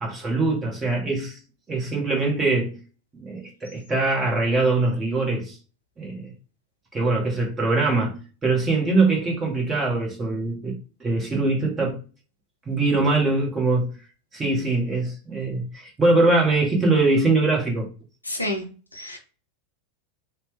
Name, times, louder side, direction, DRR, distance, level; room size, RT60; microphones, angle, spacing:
voice 1, 0.0-1.4 1.7-2.8 3.1-5.6 6.0-6.3 6.9-10.7 11.0-12.0 12.7-14.0 14.3-17.9, right 3 dB, 20° right, 1.2 m, -22 dB
voice 2, 18.3-18.6 18.9-19.2, left 1 dB, 85° left, 0.7 m, -29 dB
3.0 x 2.2 x 3.1 m
figure-of-eight pair, 90°, 0 cm